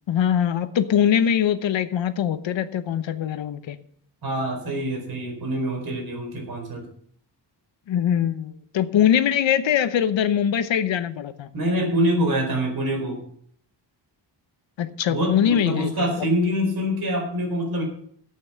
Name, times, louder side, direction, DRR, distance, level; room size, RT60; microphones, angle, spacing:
voice 1, 0.1-3.8 7.9-11.5 14.8-15.9, left 9 dB, 90° left, 11 dB, 1.0 m, -22 dB
voice 2, 4.2-6.8 11.5-13.2 15.1-17.8, equal, 55° right, 3 dB, 4.5 m, -25 dB
13.5 x 8.8 x 5.7 m, 0.62 s
wide cardioid pair, 165°, 44 cm